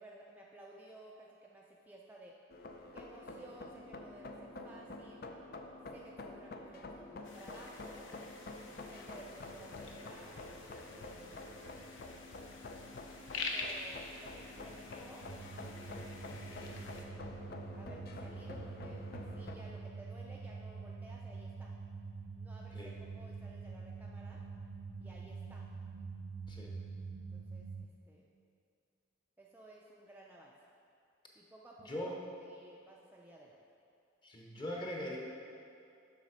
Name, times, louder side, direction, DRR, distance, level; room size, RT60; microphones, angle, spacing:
voice 1, 0.0-2.4 2.9-5.2 5.9-8.1 8.9-10.4 10.9-11.6 13.5-15.3 16.4-16.9 17.8-21.7 22.4-24.4 25.0-25.7 27.3-28.2 29.4-30.5 31.3-32.1 32.4-33.6, right 1 dB, 10° right, -3 dB, 0.5 m, -56 dB
sound 1, 2.5-19.6, left 2 dB, 50° left, 0.5 m, -48 dB
Tidal Marsh Ice, 7.2-17.1, left 3 dB, 75° left, 0.8 m, -47 dB
sound 2, 15.2-27.9, right 4 dB, 85° right, 0.6 m, -46 dB
voice 2, 31.8-32.2 34.2-35.2, equal, 25° left, -1 dB, 1.1 m, -41 dB
7.1 x 6.4 x 5.1 m, 2.6 s
head